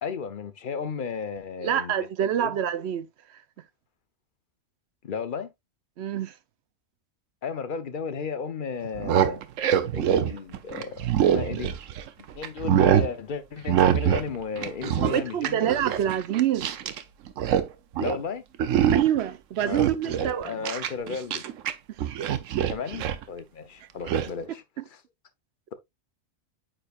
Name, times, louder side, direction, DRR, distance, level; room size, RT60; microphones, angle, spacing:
voice 1, 0.0-2.6 5.0-5.5 7.4-9.4 9.9-11.7 12.2-15.7 18.0-18.4 19.6-21.4 22.7-24.6, left 6 dB, 45° left, 0.9 m, -34 dB
voice 2, 1.6-3.1 6.0-6.3 15.0-16.7 18.9-20.5, right 10 dB, 65° right, 0.8 m, -26 dB
sound 1, 8.8-12.1 12.4-13.1 13.7-14.3 14.5-17.0 17.3-17.7 17.9-18.2 18.6-19.2 19.6-21.7 22.0-23.2 24.1-24.3, right 9 dB, 80° right, 1.1 m, -24 dB
8.8 x 4.9 x 2.4 m
omnidirectional pair, 1.3 m